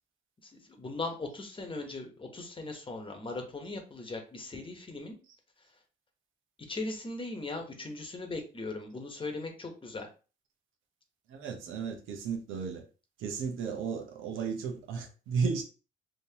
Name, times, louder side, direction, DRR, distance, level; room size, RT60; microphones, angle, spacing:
voice 1, 0.4-5.2 6.7-10.1, left 2 dB, 25° left, 1.0 m, -39 dB
voice 2, 11.3-12.8 13.2-15.6, right 5 dB, 85° right, 0.9 m, -34 dB
3.6 x 2.8 x 2.8 m
cardioid pair, 90°, 20 cm